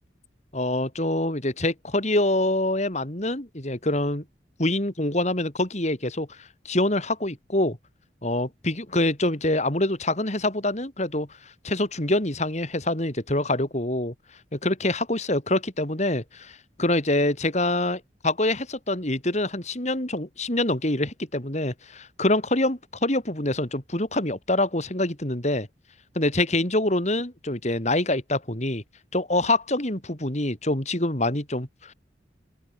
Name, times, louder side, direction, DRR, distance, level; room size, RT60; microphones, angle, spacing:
voice 1, 0.5-4.2 4.6-7.8 8.2-14.1 14.5-25.7 26.1-28.8 29.1-31.9, left 1 dB, 40° left, 3.4 m, -25 dB
open air
head